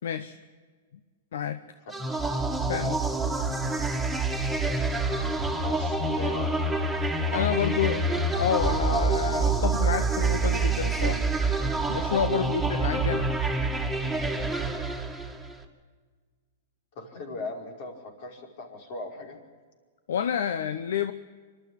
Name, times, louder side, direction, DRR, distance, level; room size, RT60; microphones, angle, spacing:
voice 1, 0.0-0.4 1.3-1.6 2.7-3.0 7.3-11.3 11.9-13.3 20.1-21.1, left 8 dB, 75° left, 11 dB, 0.8 m, -29 dB
sound 1, 1.9-15.6, right 3 dB, ahead, 2.4 m, -27 dB
voice 2, 5.6-6.8 7.2-7.9 12.3-12.5 16.9-19.4, left 3 dB, 55° left, 2 dB, 5.0 m, -39 dB
25.5 x 12.5 x 9.0 m, 1.5 s
hypercardioid pair, 130°, 0 cm